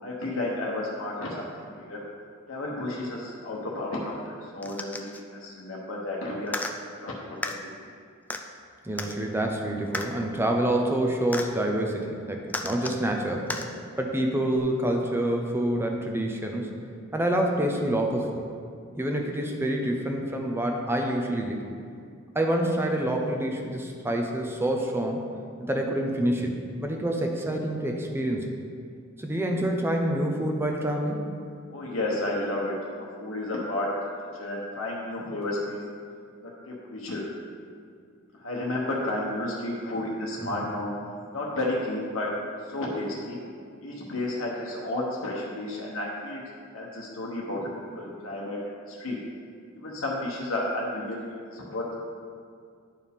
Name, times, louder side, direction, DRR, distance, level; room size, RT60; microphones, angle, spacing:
voice 1, 0.0-2.0 2.5-6.5 6.9-7.7 31.7-33.9 34.4-35.8 36.4-37.2 38.4-40.9 41.3-42.3 42.7-43.4 43.8-46.4 46.7-48.6 48.9-49.2 49.8-51.8, left 1 dB, 80° left, -4 dB, 1.0 m, -32 dB
sound 1, 4.6-5.2 6.5-6.7 7.4-7.6 8.3-8.4 9.0-9.2 9.9-10.1 11.3-11.5 12.5-13.0 13.5-13.7 14.6-14.7, left 2 dB, 10° left, 0.3 m, -33 dB
voice 2, 8.8-13.6 14.0-16.7 17.1-18.4 18.9-21.7 22.3-25.2 25.6-28.5 29.2-31.3 40.4-40.7, right 1 dB, 10° right, 1 dB, 0.7 m, -27 dB
11.0 x 4.6 x 3.5 m, 2.3 s
head